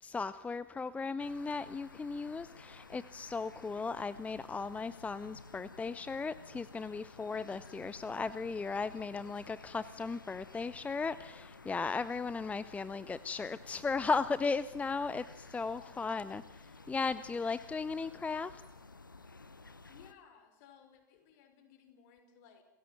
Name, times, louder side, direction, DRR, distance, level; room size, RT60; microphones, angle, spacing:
voice 1, 0.0-18.6, left 4 dB, 15° left, 16 dB, 0.7 m, -36 dB
sound 1, 1.2-20.1, left 3 dB, 90° left, 0.8 m, -54 dB
voice 2, 15.7-16.4 19.9-22.6, left 8 dB, 50° left, 6 dB, 5.3 m, -60 dB
29.5 x 16.5 x 7.8 m, 1.1 s
figure-of-eight pair, 85°, 10 cm